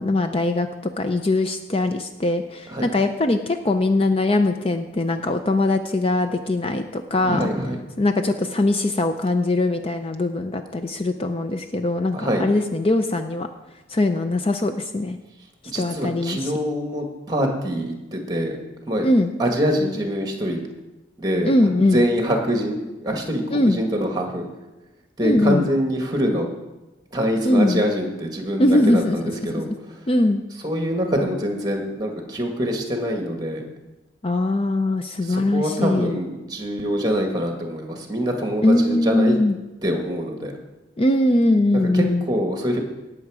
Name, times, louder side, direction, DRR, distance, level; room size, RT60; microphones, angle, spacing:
voice 1, 0.0-7.5 8.0-13.5 13.9-15.2 15.7-16.5 19.0-19.3 21.4-22.0 23.5-23.8 25.2-25.7 27.4-27.8 28.6-29.8 30.1-30.4 34.2-36.2 38.6-39.6 41.0-42.2, left 2 dB, 30° left, 7 dB, 0.5 m, -21 dB
voice 2, 7.2-7.8 12.1-12.5 15.6-18.6 18.9-19.1 19.4-20.6 21.2-24.4 25.2-26.5 27.1-29.7 30.6-33.7 35.2-39.4 39.8-40.5 41.9-42.8, equal, 20° right, 3 dB, 1.6 m, -24 dB
18.0 x 7.0 x 4.8 m, 1.1 s
head